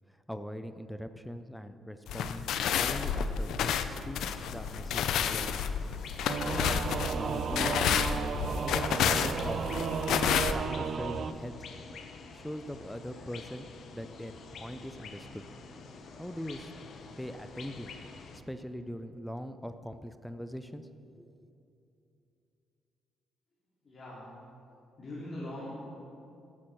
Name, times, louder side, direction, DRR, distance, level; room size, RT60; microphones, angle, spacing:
voice 1, 0.3-2.5 2.8-5.6 6.4-7.8 8.6-9.7 10.5-11.5 12.3-15.4 16.2-16.7 17.2-17.9 18.3-20.9 21.1-21.3, equal, 5° left, 10 dB, 0.5 m, -41 dB
sound 1, 2.1-10.5, left 8 dB, 80° left, 0.5 m, -30 dB
sound 2, 4.3-18.4, left 4 dB, 65° left, 0.9 m, -49 dB
Singing / Musical instrument, 6.3-11.3, right 6 dB, 55° right, 0.4 m, -33 dB
voice 2, 23.8-24.2 25.0-25.7, left 1 dB, 45° left, -7 dB, 2.6 m, -41 dB
11.5 x 6.3 x 6.0 m, 2.7 s
cardioid pair, 90°, 0 cm